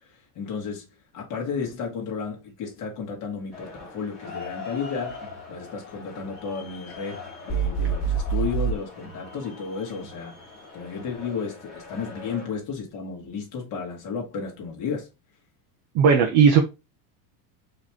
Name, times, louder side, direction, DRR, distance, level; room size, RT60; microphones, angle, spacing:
voice 1, 0.4-0.9 1.1-7.2 7.5-10.3 10.7-15.1, left 5 dB, 35° left, 1.8 m, -33 dB
sound 1, 3.5-12.5, left 4 dB, ahead, 1.7 m, -42 dB
sound 2, 7.5-8.8, right 6 dB, 20° left, 2.0 m, -25 dB
voice 2, 15.9-16.6, right 6 dB, 35° right, 0.5 m, -16 dB
4.9 x 3.1 x 3.5 m
supercardioid pair, 175°, 50 cm